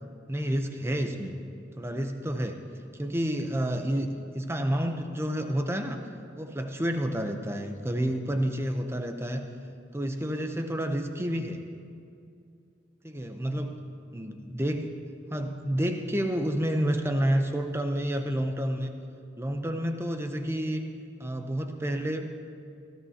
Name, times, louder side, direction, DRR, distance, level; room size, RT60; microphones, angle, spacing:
voice 1, 0.3-1.3 1.8-2.6 2.9-6.0 6.4-9.4 9.9-11.6 13.0-13.8 14.1-14.9 15.3-18.9 19.4-20.8 21.2-22.3, equal, 15° right, 5 dB, 0.6 m, -29 dB
18.5 x 14.0 x 2.8 m, 2.4 s
head